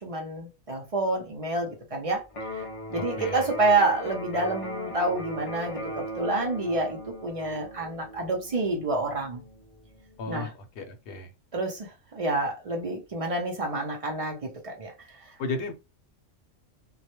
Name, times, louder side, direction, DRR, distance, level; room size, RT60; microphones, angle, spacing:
voice 1, 0.0-2.2 2.9-9.4 10.3-10.5 11.5-11.9 12.1-14.4 14.6-14.9, right 2 dB, 60° right, 0.3 m, -28 dB
Electric guitar, 2.3-10.3, equal, 50° left, 0.4 m, -38 dB
voice 2, 3.0-3.5 10.2-11.3 15.4-15.7, left 3 dB, 65° left, 0.8 m, -34 dB
2.2 x 2.1 x 2.9 m
omnidirectional pair, 1.3 m